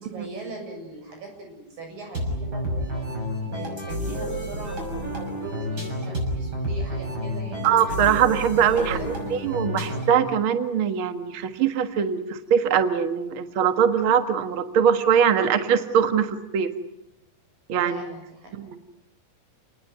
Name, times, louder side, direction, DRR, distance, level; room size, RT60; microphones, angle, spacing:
voice 1, 0.0-3.0 3.5-7.7 8.8-9.5 17.8-18.6, right 2 dB, 50° right, 3 dB, 8.7 m, -40 dB
sound 1, 2.1-10.3, equal, 25° right, 7.1 m, -30 dB
voice 2, 7.6-9.0 9.4-16.7 17.7-18.0 18.7-18.8, right 8 dB, 90° right, 8 dB, 1.1 m, -22 dB
30.0 x 19.5 x 9.4 m, 0.86 s
omnidirectional pair, 5.1 m